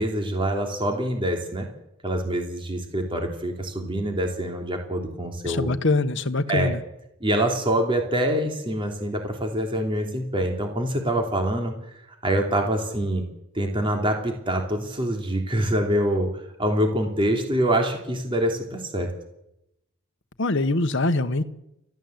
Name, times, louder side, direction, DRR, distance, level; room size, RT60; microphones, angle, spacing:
voice 1, 0.0-1.7 2.0-5.7 6.5-6.7 7.2-11.7 12.2-13.2 13.5-19.1, right 1 dB, 25° right, 3 dB, 3.0 m, -25 dB
voice 2, 5.4-6.8 20.4-21.4, left 2 dB, 55° left, 8 dB, 1.1 m, -23 dB
30.0 x 13.0 x 8.0 m, 0.85 s
head